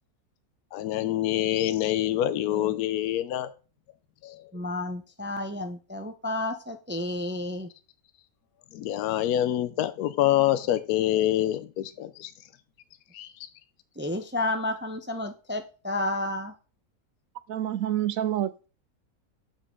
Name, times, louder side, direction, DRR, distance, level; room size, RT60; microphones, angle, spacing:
voice 1, 0.7-3.5 4.2-4.4 8.7-12.3 13.1-13.3, left 13 dB, 80° left, 1.1 m, -26 dB
voice 2, 4.5-7.7 14.0-16.5, left 2 dB, 15° right, 0.4 m, -31 dB
voice 3, 17.5-18.7, right 11 dB, 70° right, 0.9 m, -28 dB
7.3 x 7.2 x 3.7 m
omnidirectional pair, 1.6 m